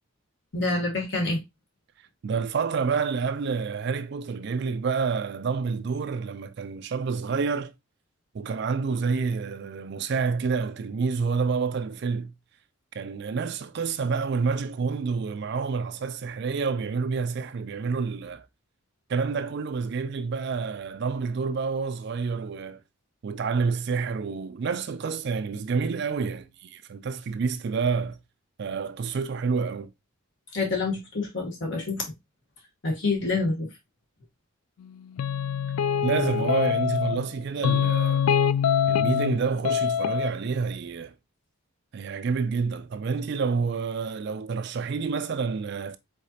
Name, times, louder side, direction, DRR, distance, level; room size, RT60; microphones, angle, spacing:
voice 1, 0.5-1.4 30.5-32.0 32.8-33.7, left 3 dB, 55° left, 1.2 m, -27 dB
voice 2, 2.2-7.7 8.3-12.3 12.9-18.5 19.1-22.8 23.2-28.2 28.6-29.9 36.0-38.3 38.9-41.1 41.9-46.0, right 5 dB, 50° right, 0.3 m, -28 dB
sound 1, 35.2-37.3 37.6-39.4 39.6-40.3, left 8 dB, 85° left, 0.3 m, -24 dB
4.9 x 3.9 x 2.7 m
head